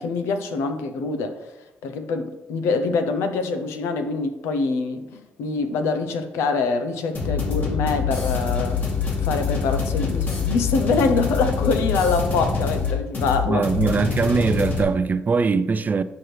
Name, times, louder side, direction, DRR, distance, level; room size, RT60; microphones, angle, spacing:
voice 1, 0.0-1.5 1.8-8.8 9.2-13.7, left 4 dB, 80° left, 0.7 m, -25 dB
sound 1, 7.1-14.8, left 5 dB, 45° left, 2.1 m, -25 dB
voice 2, 13.4-16.0, right 4 dB, 40° right, 0.4 m, -21 dB
9.5 x 4.5 x 3.3 m
supercardioid pair, 55°, 4 cm